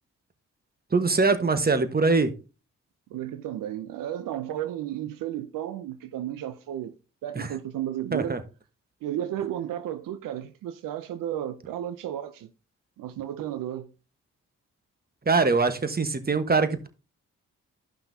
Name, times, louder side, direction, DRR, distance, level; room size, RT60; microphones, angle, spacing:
voice 1, 0.9-2.3 7.4-7.5 8.1-8.4 15.3-16.9, right 4 dB, 30° right, 1.3 m, -23 dB
voice 2, 3.1-6.9 7.2-8.4 9.0-12.5 13.0-13.9, right 11 dB, 80° right, 0.6 m, -33 dB
14.0 x 5.7 x 2.7 m
supercardioid pair, 45°, 32 cm